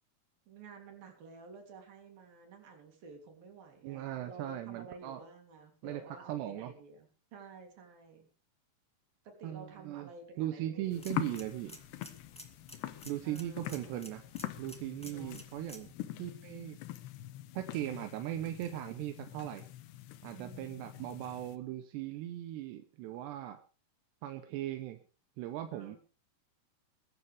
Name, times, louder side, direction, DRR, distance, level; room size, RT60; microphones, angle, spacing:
voice 1, 0.5-8.3 9.2-11.4 13.2-13.9 15.0-15.4 20.3-21.2 25.7-26.0, right 4 dB, 60° right, 3 dB, 5.0 m, -52 dB
voice 2, 3.8-5.2 5.8-6.0 6.3-6.7 9.4-10.1 10.4-11.8 13.1-14.2 14.6-16.8 17.5-19.6 20.2-23.6 24.2-25.0 25.4-26.0, right 13 dB, 85° right, 7 dB, 3.1 m, -38 dB
sound 1, 10.8-15.9, equal, 5° left, 0.5 m, -54 dB
sound 2, 10.9-21.6, left 15 dB, 85° left, 3.1 m, -44 dB
21.5 x 11.5 x 3.5 m, 0.36 s
omnidirectional pair, 4.8 m